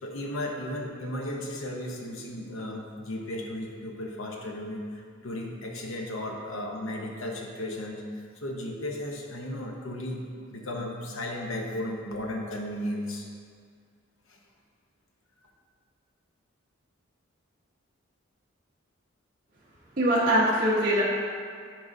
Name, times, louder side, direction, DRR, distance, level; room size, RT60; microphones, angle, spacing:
voice 1, 0.0-10.2 10.5-13.3 14.3-14.4, left 1 dB, 80° left, 0 dB, 0.9 m, -35 dB
voice 2, 20.0-21.0, right 1 dB, 45° right, -11 dB, 1.4 m, -22 dB
10.0 x 4.7 x 2.7 m, 2.1 s
head